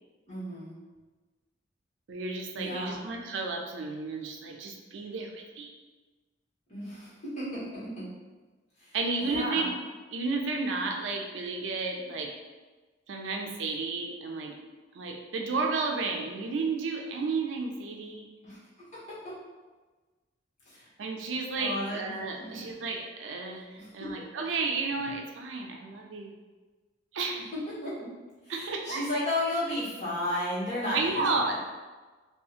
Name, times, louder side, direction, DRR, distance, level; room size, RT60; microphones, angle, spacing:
voice 1, 0.3-0.8 2.5-3.0 6.7-8.0 8.8-9.7 18.4-18.6 20.6-20.9 21.6-22.1 22.4-22.6 23.8-23.9 27.8-28.1 28.4-31.5, left 1 dB, 40° left, -10 dB, 1.2 m, -33 dB
voice 2, 2.1-5.7 8.9-9.7 10.1-12.3 13.1-14.6 14.9-18.3 21.0-26.3 27.1-27.4 28.5-29.0 30.9-31.5, right 3 dB, 85° right, 1 dB, 0.4 m, -32 dB
2.7 x 2.4 x 2.4 m, 1.3 s
head